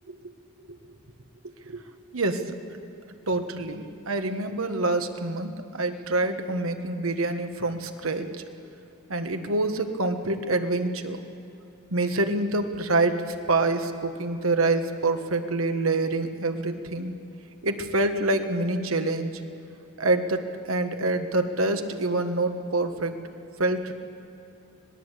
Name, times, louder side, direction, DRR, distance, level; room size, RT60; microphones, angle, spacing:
voice 1, 2.1-2.6 3.3-8.3 9.1-11.2 11.9-13.2 13.5-17.1 17.6-19.3 20.0-23.2 23.6-23.9, right 2 dB, 90° right, 7 dB, 1.6 m, -26 dB
25.0 x 18.5 x 8.3 m, 2.8 s
head